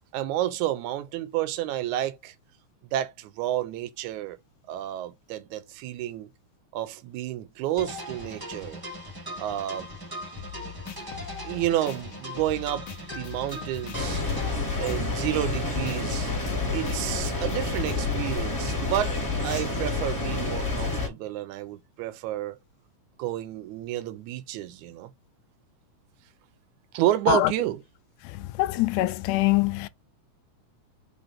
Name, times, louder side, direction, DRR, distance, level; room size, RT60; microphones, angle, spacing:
voice 1, 0.1-2.3 2.9-4.4 4.7-6.3 6.7-8.8 9.4-9.9 11.4-14.3 14.8-16.3 16.7-19.2 19.4-22.6 23.2-25.1 26.9-27.8, right 13 dB, 80° right, 2.1 m, -30 dB
sound 1, 7.8-14.6, equal, 10° right, 1.1 m, -39 dB
sound 2, 10.4-18.4, left 8 dB, 55° left, 1.3 m, -43 dB
sound 3, 13.9-21.1, left 3 dB, 20° left, 2.2 m, -28 dB
voice 2, 28.6-29.9, left 18 dB, 85° left, 2.0 m, -23 dB
5.2 x 3.4 x 5.6 m
omnidirectional pair, 3.5 m